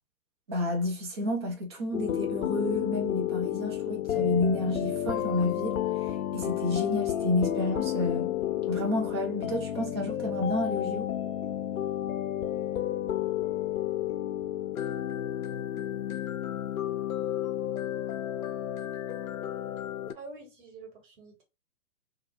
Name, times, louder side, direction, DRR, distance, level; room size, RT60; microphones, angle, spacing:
voice 1, 0.5-5.8 6.1-8.3 8.7-11.1, left 2 dB, 20° right, 0.4 m, -30 dB
sound 1, 1.9-20.1, left 11 dB, 75° left, 0.5 m, -31 dB
voice 2, 20.1-21.4, right 3 dB, 40° right, 1.4 m, -46 dB
2.4 x 2.2 x 2.9 m
figure-of-eight pair, 120°, 42 cm